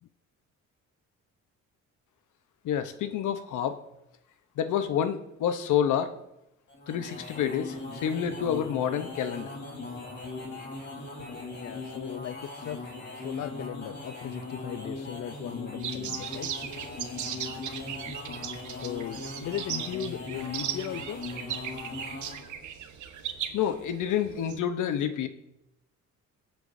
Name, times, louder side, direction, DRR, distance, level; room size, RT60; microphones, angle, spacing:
voice 1, 2.6-3.8 4.6-6.1 6.9-9.5 23.5-25.3, left 9 dB, 80° left, 9 dB, 1.0 m, -28 dB
sound 1, 6.7-22.5, left 3 dB, 35° left, 4.1 m, -39 dB
voice 2, 11.5-16.5 18.7-21.2, left 10 dB, 55° left, 10 dB, 0.6 m, -38 dB
sound 2, 15.8-24.6, right 9 dB, 75° right, 1.1 m, -38 dB
23.0 x 8.2 x 2.7 m, 0.87 s
cardioid pair, 90°, 30 cm